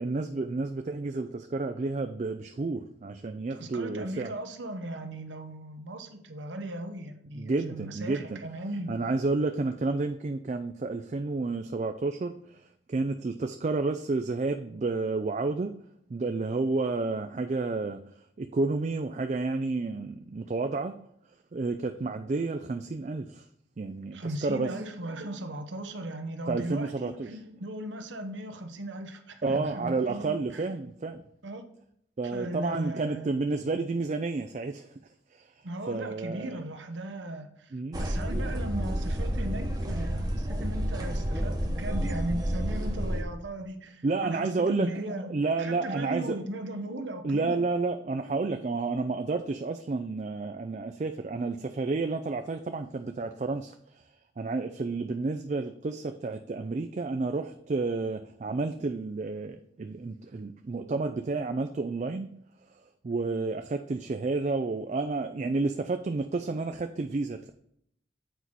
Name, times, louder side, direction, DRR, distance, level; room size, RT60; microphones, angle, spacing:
voice 1, 0.0-4.3 7.4-8.4 8.9-12.6 12.9-15.7 16.1-18.0 18.4-20.9 21.5-23.4 23.8-24.7 26.5-27.3 29.4-31.2 32.2-34.9 35.3-35.5 35.9-36.6 37.7-38.1 44.0-44.9 45.3-46.4 47.2-54.0 54.4-62.3 63.0-67.5, right 3 dB, 40° right, 7 dB, 0.3 m, -30 dB
voice 2, 3.5-9.0 24.1-30.7 31.4-31.6 32.3-33.3 35.6-47.6, right 1 dB, 85° right, 7 dB, 1.0 m, -37 dB
sound 1, 37.9-43.2, equal, 20° right, 0.9 m, -30 dB
8.0 x 4.6 x 4.1 m, 0.71 s
head